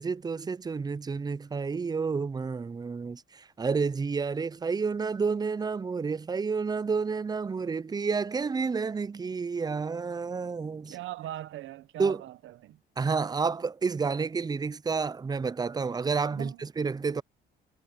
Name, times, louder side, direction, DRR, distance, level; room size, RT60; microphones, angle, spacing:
voice 1, 0.0-11.0 12.0-12.2 13.0-17.2, right 5 dB, 20° right, 0.4 m, -30 dB
voice 2, 10.9-12.8 16.3-16.6, right 14 dB, 80° right, 0.9 m, -40 dB
cardioid pair, 90°, 20 cm